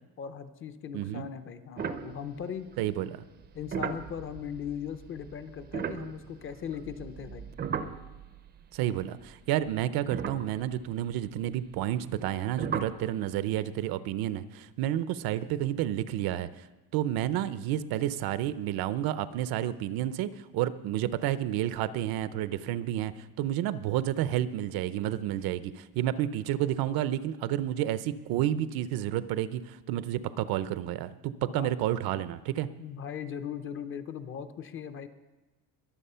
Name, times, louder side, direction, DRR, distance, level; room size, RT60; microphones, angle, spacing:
voice 1, 0.2-2.7 3.5-7.5 31.4-31.7 32.8-35.1, left 8 dB, 35° left, 10 dB, 0.7 m, -39 dB
voice 2, 0.9-1.3 2.8-3.2 8.7-16.7 16.9-32.7, right 12 dB, 70° right, 14 dB, 0.7 m, -30 dB
sound 1, 1.8-2.8 3.4-8.6 8.9-9.1 9.7-9.8 10.1-11.2 12.6-13.0, right 7 dB, 25° right, 0.5 m, -37 dB
21.5 x 7.4 x 5.6 m, 1.1 s
cardioid pair, 180°, 38 cm